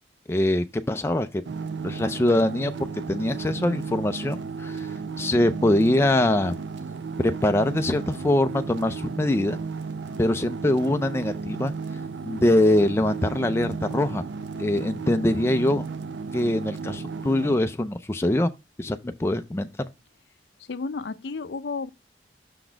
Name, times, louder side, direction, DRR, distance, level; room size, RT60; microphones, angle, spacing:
voice 1, 0.3-1.4 1.8-2.7 3.1-4.9 5.2-6.6 7.2-9.6 10.2-11.7 12.2-14.3 14.6-15.8 16.3-18.5 18.8-19.9, left 1 dB, 15° left, 0.3 m, -23 dB
sound 1, 1.4-17.6, right 5 dB, 80° right, 0.5 m, -34 dB
voice 2, 20.7-21.9, left 4 dB, 70° left, 0.5 m, -32 dB
6.1 x 4.0 x 4.4 m
head